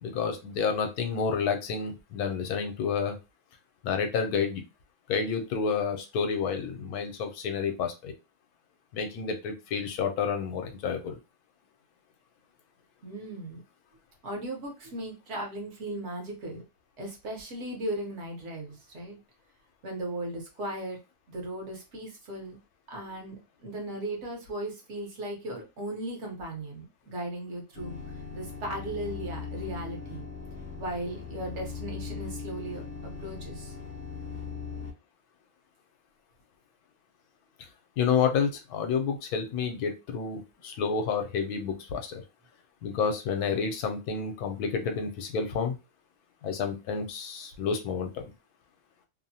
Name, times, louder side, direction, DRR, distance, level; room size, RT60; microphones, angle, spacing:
voice 1, 0.0-3.2 3.8-4.6 5.1-8.1 8.9-11.2 38.0-42.2 42.8-45.8 46.4-48.2, left 6 dB, 80° left, 5 dB, 1.1 m, -29 dB
voice 2, 13.0-13.6 14.2-16.6 17.0-19.2 19.8-21.0 21.3-22.6 22.9-28.0 28.3-30.3 30.8-33.7, right 1 dB, 55° right, 1 dB, 1.1 m, -37 dB
sound 1, 27.7-34.9, left 5 dB, 60° left, 0.8 m, -39 dB
2.9 x 2.1 x 2.7 m, 0.27 s
omnidirectional pair, 1.6 m